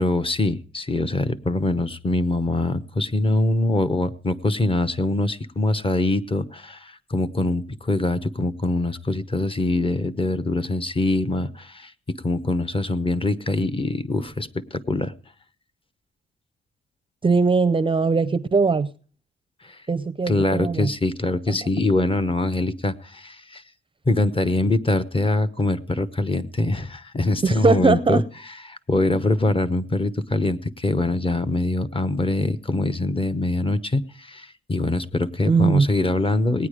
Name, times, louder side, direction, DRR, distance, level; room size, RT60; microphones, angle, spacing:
voice 1, 0.0-15.1 19.6-19.8 20.3-23.6 24.1-36.7, left 2 dB, 25° left, 0.9 m, -23 dB
voice 2, 17.2-18.9 19.9-20.9 21.5-21.6 27.4-28.2 35.5-35.9, right 4 dB, 25° right, 0.5 m, -20 dB
18.5 x 9.3 x 5.0 m
cardioid pair, 95°, 21 cm